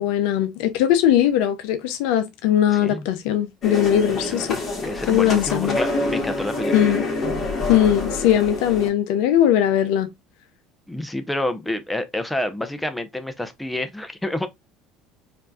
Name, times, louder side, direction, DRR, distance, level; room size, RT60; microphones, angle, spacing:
voice 1, 0.0-4.6 5.1-5.8 6.7-7.0 7.7-10.1, left 11 dB, 75° left, 0.6 m, -20 dB
voice 2, 2.7-3.0 4.2-4.4 4.8-7.0 10.9-14.5, left 1 dB, 5° left, 0.7 m, -28 dB
sound 1, 3.6-8.9, left 2 dB, 35° left, 1.8 m, -27 dB
4.5 x 2.6 x 2.3 m
hypercardioid pair, 85°, 0 cm